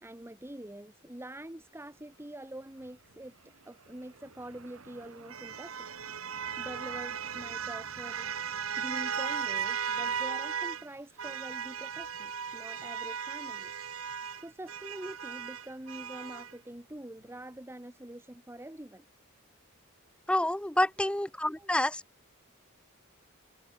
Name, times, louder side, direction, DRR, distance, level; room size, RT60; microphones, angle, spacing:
voice 1, 0.0-3.3 3.6-5.9 6.3-8.3 8.8-13.7 14.1-19.0 20.7-20.9 21.5-21.7, right 1 dB, 10° right, 1.3 m, -45 dB
sound 1, 4.2-10.9 11.2-16.5, right 7 dB, 85° right, 1.7 m, -37 dB
voice 2, 20.3-22.0, left 1 dB, 5° left, 0.6 m, -28 dB
open air
head